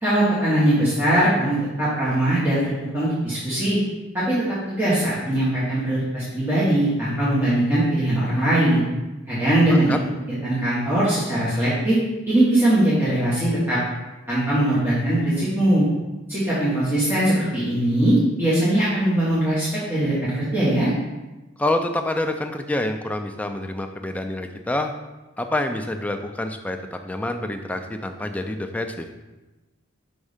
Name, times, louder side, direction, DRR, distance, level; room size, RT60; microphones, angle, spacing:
voice 1, 0.0-3.8 4.1-4.4 4.7-8.8 9.3-9.9 10.4-12.0 12.3-13.8 14.3-15.8 16.3-20.9, right 1 dB, 10° right, -11 dB, 1.4 m, -21 dB
voice 2, 21.6-24.9 25.4-29.1, left 1 dB, 5° left, 5 dB, 0.3 m, -27 dB
5.3 x 3.6 x 5.0 m, 1.1 s
head